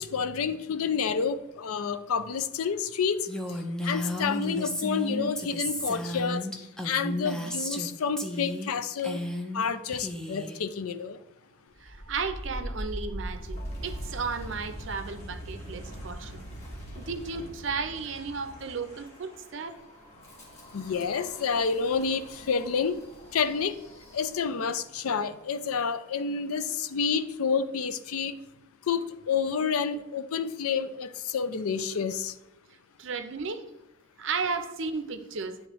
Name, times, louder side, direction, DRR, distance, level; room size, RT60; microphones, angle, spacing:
voice 1, 0.0-3.3 3.8-6.5 6.8-9.2 9.5-11.2 20.7-23.0 23.3-23.7 24.1-28.3 28.9-32.3, left 6 dB, 90° left, 12 dB, 0.5 m, -29 dB
Female speech woman speaking, 3.3-7.9 8.2-8.7 9.0-9.6 9.9-10.6, left 1 dB, 5° left, 0.5 m, -33 dB
Wind, 11.7-24.7, equal, 30° left, 1.5 m, -42 dB
voice 2, 11.8-16.5 16.9-19.8 33.0-33.7 34.2-35.6, right 4 dB, 60° right, 8 dB, 0.5 m, -34 dB
10.0 x 3.6 x 3.0 m, 0.93 s
head